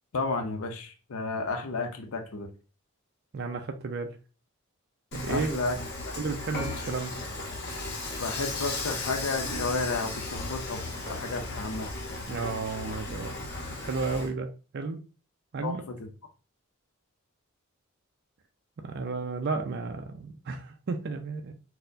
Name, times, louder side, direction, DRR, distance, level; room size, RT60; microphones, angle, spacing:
voice 1, 0.1-2.5 5.3-5.8 8.2-10.8 11.1-11.9 15.6-15.9, left 3 dB, 80° left, 0.6 m, -32 dB
voice 2, 3.3-4.1 5.1-5.6 6.2-7.1 12.3-15.0 15.5-15.8 18.8-21.5, right 4 dB, 50° right, 0.4 m, -33 dB
Dishes pots and pans / Frying (food), 5.1-14.3, left 2 dB, 50° left, 0.9 m, -35 dB
4.2 x 2.1 x 2.5 m
head